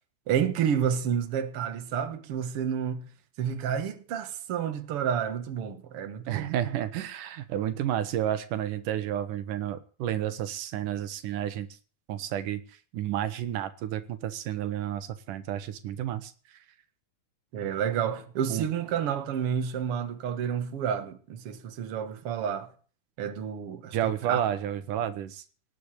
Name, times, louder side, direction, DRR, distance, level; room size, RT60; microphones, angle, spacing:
voice 1, 0.3-3.1 3.4-6.5 17.5-22.7 23.2-24.0 24.3-24.4, right 8 dB, 50° right, 2.2 m, -30 dB
voice 2, 6.3-11.7 12.1-12.6 12.9-16.3 18.5-18.7 23.9-25.4, right 11 dB, 85° right, 2.7 m, -31 dB
19.0 x 7.0 x 9.6 m
omnidirectional pair, 3.6 m